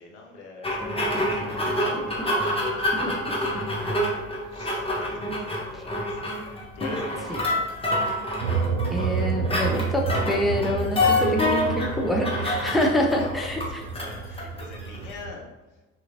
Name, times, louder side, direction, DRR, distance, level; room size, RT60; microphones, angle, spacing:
voice 1, 0.0-2.3 2.9-3.0 4.5-6.3 6.7-8.0 13.1-13.3 13.9-15.5, left 2 dB, 65° left, 0 dB, 0.9 m, -42 dB
sound 1, 0.6-15.2, left 1 dB, 15° left, 1.1 m, -27 dB
sound 2, 8.4-15.3, right 5 dB, 80° right, 0.5 m, -30 dB
voice 2, 8.9-13.8, left 1 dB, ahead, 0 dB, 0.6 m, -26 dB
5.7 x 3.0 x 2.9 m, 1.1 s
figure-of-eight pair, 50°, 37 cm